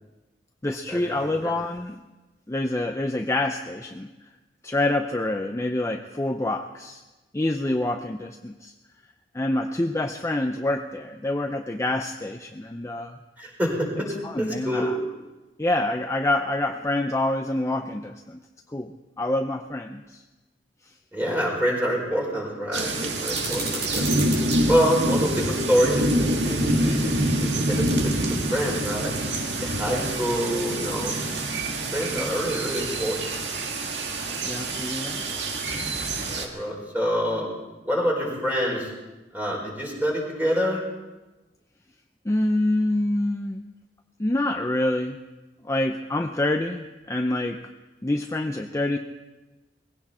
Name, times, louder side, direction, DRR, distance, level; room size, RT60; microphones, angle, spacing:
voice 1, 0.6-2.0 2.5-4.1 4.6-7.0 7.3-8.7 9.3-13.2 14.2-15.0 15.6-18.4 18.7-20.2 20.8-20.9 29.9-30.1 32.2-32.4 34.4-35.3 42.2-43.7 44.2-45.2 45.6-47.7 48.0-49.0, left 1 dB, 15° left, 5 dB, 0.6 m, -27 dB
voice 2, 13.4-14.1 14.4-14.9 21.1-24.1 24.7-29.2 29.6-31.2 31.9-33.4 36.3-37.5 37.8-38.9 39.3-40.8, equal, 10° right, -2 dB, 4.6 m, -26 dB
sound 1, 22.7-36.5, right 1 dB, 80° right, 1.8 m, -26 dB
sound 2, 23.2-24.6, right 2 dB, 60° right, 4.8 m, -33 dB
20.0 x 16.5 x 4.3 m, 1.1 s
head